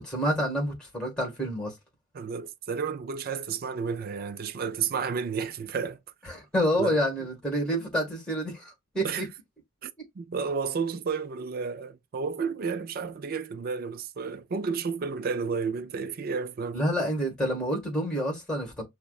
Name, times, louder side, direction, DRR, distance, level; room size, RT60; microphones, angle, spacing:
voice 1, 0.0-1.7 6.2-9.2 16.7-18.8, equal, 5° left, 1.5 m, -28 dB
voice 2, 2.1-6.0 6.8-7.0 9.0-9.3 9.8-9.9 10.2-16.8, right 5 dB, 40° right, 0.3 m, -31 dB
5.7 x 2.1 x 2.3 m
head